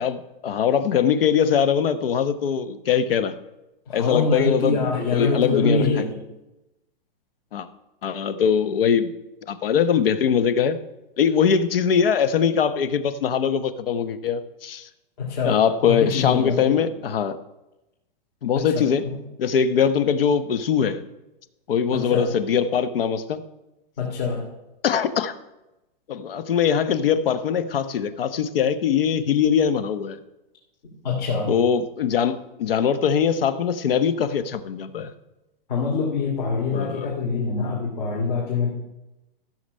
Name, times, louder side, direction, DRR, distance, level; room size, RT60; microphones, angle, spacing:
voice 1, 0.0-3.3 3.9-4.8 5.1-5.8 7.5-7.7 8.0-9.1 9.5-10.8 11.2-14.9 15.4-17.4 18.4-19.0 19.4-21.0 21.7-23.4 24.8-25.3 26.1-30.2 31.5-35.1 36.7-37.0, left 7 dB, 75° left, 12 dB, 1.0 m, -22 dB
voice 2, 3.9-6.2 15.2-16.8 18.5-19.2 21.9-22.3 24.0-24.5 30.8-31.5 35.7-38.7, left 4 dB, 55° left, -3 dB, 2.7 m, -25 dB
15.0 x 6.6 x 5.4 m, 0.99 s
hypercardioid pair, 175°, 29 cm